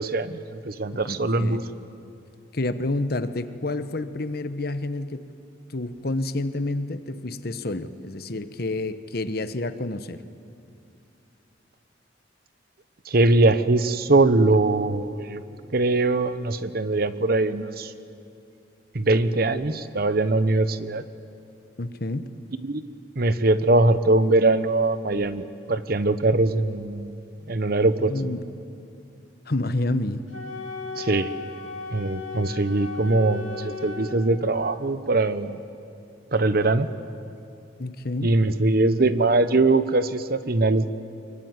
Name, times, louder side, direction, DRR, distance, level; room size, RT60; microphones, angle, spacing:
voice 1, 0.0-1.6 13.1-15.4 15.7-17.9 18.9-21.0 22.7-22.8 23.2-27.2 27.5-28.1 30.9-31.3 31.9-35.6 36.3-36.9 38.2-40.9, right 2 dB, 50° right, 12 dB, 0.9 m, -22 dB
voice 2, 0.9-1.6 2.5-5.3 5.7-10.2 21.8-22.3 28.0-28.4 29.5-30.3 37.8-38.3, left 2 dB, 50° left, 11 dB, 1.0 m, -29 dB
Wind instrument woodwind instrument, 30.3-34.2, left 5 dB, 90° left, 2.8 m, -36 dB
24.0 x 23.0 x 9.5 m, 2.6 s
head